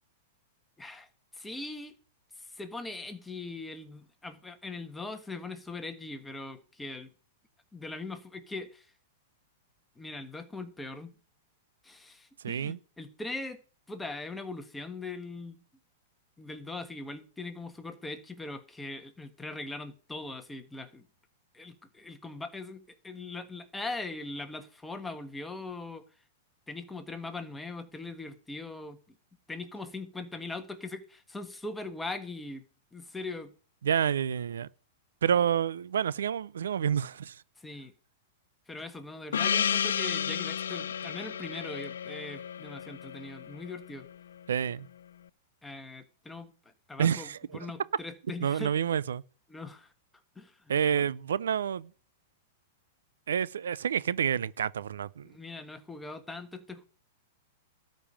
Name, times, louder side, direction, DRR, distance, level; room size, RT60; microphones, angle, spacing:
voice 1, 0.8-1.1 1.3-2.0 2.4-7.1 7.7-8.9 10.0-11.2 11.8-13.6 13.9-15.6 16.4-21.1 21.5-26.0 26.7-29.0 29.5-32.6 32.9-33.5 37.6-37.9 38.7-44.1 45.6-46.5 46.9-48.7 49.5-49.9 50.3-50.6 50.9-51.1 55.2-56.9, left 3 dB, 5° left, 1.4 m, -41 dB
voice 2, 12.4-12.8 33.8-34.7 35.2-37.4 44.5-44.9 47.0-47.4 48.4-49.2 50.7-51.9 53.3-55.3, right 8 dB, 85° right, 0.4 m, -28 dB
Gong, 39.3-44.1, left 8 dB, 85° left, 0.5 m, -32 dB
12.5 x 5.3 x 8.7 m
hypercardioid pair, 135°, 0 cm